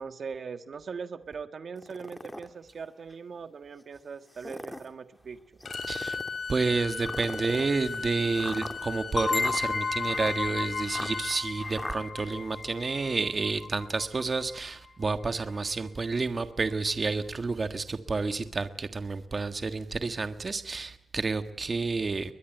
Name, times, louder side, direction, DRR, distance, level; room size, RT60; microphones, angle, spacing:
voice 1, 0.0-5.6, right 5 dB, 65° right, 10 dB, 1.6 m, -40 dB
sound 1, 1.8-2.5 3.1-3.2 4.2-4.9 5.6-6.4 7.0-12.0, left 1 dB, 10° left, 2.2 m, -41 dB
Bowed string instrument, 5.6-11.4, left 5 dB, 65° left, 7.1 m, -38 dB
voice 2, 5.8-6.2 6.5-22.3, right 4 dB, 40° right, 9 dB, 1.5 m, -30 dB
sound 2, 9.2-14.6, left 4 dB, 40° left, 1.1 m, -33 dB
22.0 x 21.5 x 9.2 m, 0.69 s
cardioid pair, 80°, 0 cm